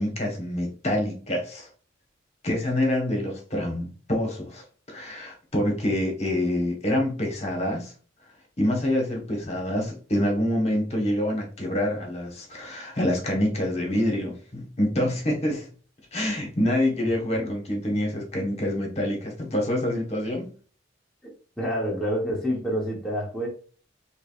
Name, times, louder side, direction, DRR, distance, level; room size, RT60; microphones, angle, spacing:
voice 1, 0.0-1.7 2.4-7.9 8.6-15.7 16.1-20.4, left 1 dB, 35° left, 1.2 m, -26 dB
voice 2, 21.6-23.5, equal, ahead, 0.9 m, -27 dB
4.7 x 3.1 x 2.4 m
head